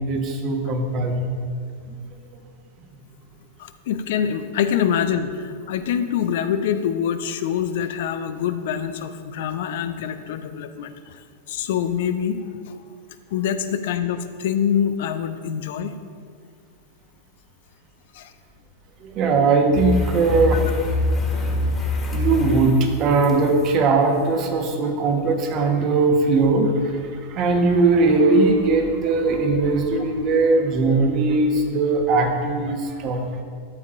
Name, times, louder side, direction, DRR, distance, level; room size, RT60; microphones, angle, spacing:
voice 1, 0.1-1.3 19.0-20.7 21.3-21.5 22.1-33.4, right 3 dB, 40° right, 4 dB, 1.2 m, -20 dB
voice 2, 3.6-12.4 12.7-12.8 13.3-16.0 18.1-18.3 20.5-20.6 32.1-32.2, left 8 dB, 60° left, 10 dB, 0.5 m, -25 dB
sound 1, 19.7-23.7 25.4-25.5, left 3 dB, 20° left, 1.8 m, -25 dB
13.0 x 7.1 x 2.5 m, 2.1 s
figure-of-eight pair, 95°, 0 cm